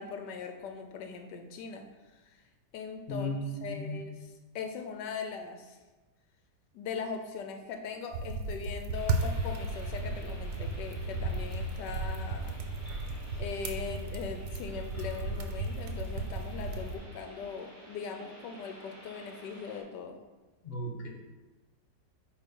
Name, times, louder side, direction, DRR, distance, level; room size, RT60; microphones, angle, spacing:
voice 1, 0.0-1.8 2.1-2.4 2.7-3.3 3.6-5.8 6.7-12.5 13.4-20.2, left 6 dB, 80° left, 5 dB, 1.3 m, -40 dB
voice 2, 3.1-4.0 20.6-21.1, equal, 35° left, 0 dB, 1.4 m, -35 dB
sound 1, 8.1-17.0, right 2 dB, 70° right, 1.2 m, -35 dB
sound 2, 8.9-19.8, equal, 10° left, 2.0 m, -51 dB
9.1 x 3.1 x 5.3 m, 1.2 s
omnidirectional pair, 1.8 m